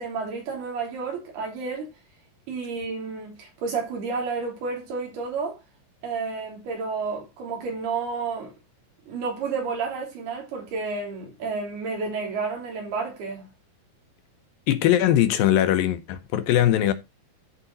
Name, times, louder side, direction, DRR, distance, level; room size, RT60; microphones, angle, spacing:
voice 1, 0.0-1.9 2.5-5.6 6.0-8.5 9.1-13.5, right 4 dB, 80° right, 5.4 m, -31 dB
voice 2, 14.7-16.9, left 12 dB, 75° left, 2.4 m, -20 dB
13.0 x 5.0 x 3.9 m
omnidirectional pair, 4.5 m